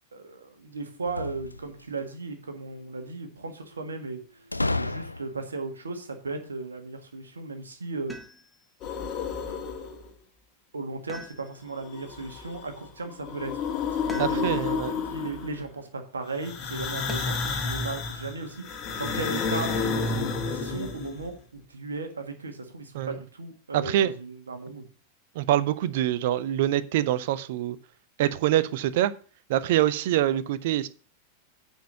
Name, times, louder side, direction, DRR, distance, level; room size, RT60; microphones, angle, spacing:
voice 1, 0.1-4.2 4.7-8.2 9.5-9.9 10.7-24.9, right 3 dB, 75° right, 1.6 m, -36 dB
sound 1, 1.0-2.0 4.5-5.6, left 2 dB, 85° left, 0.3 m, -31 dB
sound 2, 8.1-8.7 11.1-11.9 14.1-14.8 17.1-17.6 19.3-19.9, left 1 dB, 5° left, 1.2 m, -45 dB
sound 3, 8.8-10.1 11.8-12.7 13.1-15.6 16.4-21.3, left 5 dB, 35° left, 1.8 m, -31 dB
voice 2, 14.2-14.9 22.9-23.2 23.7-24.1 25.4-27.8 28.2-29.1 29.5-30.9, right 12 dB, 50° right, 0.6 m, -25 dB
9.2 x 4.5 x 6.9 m
figure-of-eight pair, 90°, 0 cm